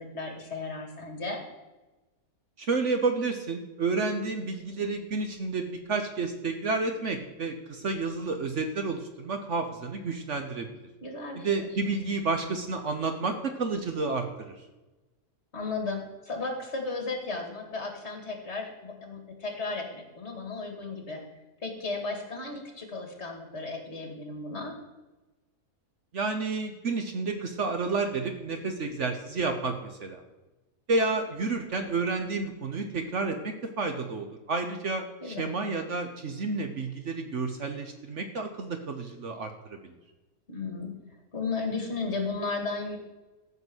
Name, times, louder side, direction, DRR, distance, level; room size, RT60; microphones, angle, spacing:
voice 1, 0.0-1.4 11.0-11.7 15.5-21.2 21.6-24.7 35.2-35.5 40.5-40.9 41.3-43.0, left 3 dB, 45° left, 3 dB, 2.3 m, -34 dB
voice 2, 2.6-10.7 11.4-14.5 26.1-30.2 30.9-39.9, right 3 dB, 55° right, 6 dB, 1.2 m, -30 dB
14.0 x 5.3 x 8.0 m, 1.1 s
omnidirectional pair, 1.6 m